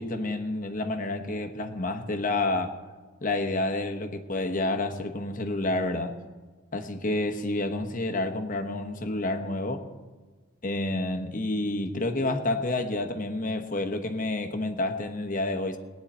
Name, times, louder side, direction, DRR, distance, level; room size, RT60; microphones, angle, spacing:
voice 1, 0.0-2.8 3.2-6.2 6.7-9.8 10.6-15.8, left 2 dB, 40° left, 5 dB, 1.1 m, -29 dB
20.0 x 9.6 x 4.3 m, 1.4 s
head